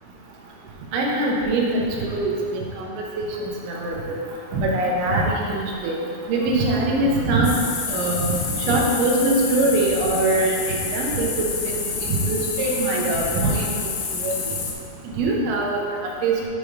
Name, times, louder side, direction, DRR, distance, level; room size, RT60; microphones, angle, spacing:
voice 1, 0.9-4.2 4.5-7.5 7.9-8.3 8.6-13.9 14.2-14.4 15.2-16.4, right 2 dB, 80° right, -2 dB, 2.8 m, -23 dB
sound 1, 7.4-14.7, left 5 dB, 80° left, 1.9 m, -28 dB
8.3 x 3.3 x 5.1 m, 2.3 s
omnidirectional pair, 4.5 m